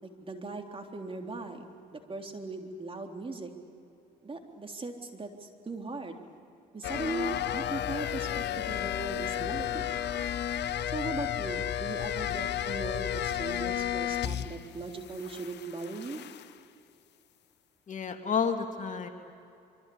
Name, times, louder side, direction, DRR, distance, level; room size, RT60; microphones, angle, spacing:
voice 1, 0.0-3.5 4.2-6.2 6.7-9.9 10.9-16.2, right 3 dB, 25° right, 3 dB, 3.6 m, -39 dB
sound 1, 6.8-14.7 15.0-16.5, left 11 dB, 55° left, 1.2 m, -33 dB
voice 2, 17.9-19.1, left 6 dB, 35° left, 4 dB, 2.6 m, -30 dB
25.0 x 25.0 x 8.8 m, 2.6 s
hypercardioid pair, 60°, 21 cm